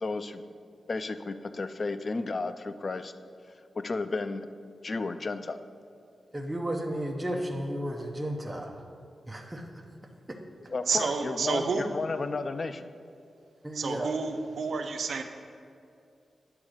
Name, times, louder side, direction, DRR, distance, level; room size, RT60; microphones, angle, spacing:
voice 1, 0.0-0.4 0.9-3.1 3.8-4.5 4.8-5.6 10.7-12.9, left 3 dB, 35° left, 11 dB, 0.3 m, -33 dB
voice 2, 6.3-8.8 9.3-9.6 10.3-10.4 13.6-14.1, right 1 dB, 10° right, 0 dB, 0.6 m, -33 dB
voice 3, 10.9-11.9 13.7-15.2, right 4 dB, 65° right, 6 dB, 0.5 m, -30 dB
9.4 x 3.6 x 6.4 m, 2.5 s
wide cardioid pair, 165°, 0 cm